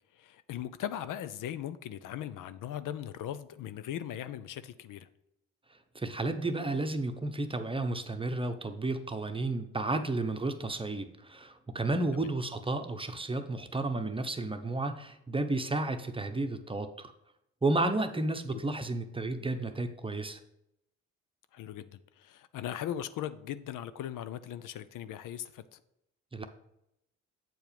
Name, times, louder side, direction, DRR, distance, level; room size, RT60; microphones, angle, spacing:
voice 1, 0.1-5.1 12.2-12.3 18.5-18.6 21.5-25.8, left 11 dB, 65° left, 13 dB, 0.5 m, -39 dB
voice 2, 5.9-17.1 17.6-20.4 26.3-26.4, right 2 dB, 15° right, 8 dB, 0.8 m, -32 dB
7.8 x 4.6 x 5.2 m, 0.82 s
supercardioid pair, 60°, 34 cm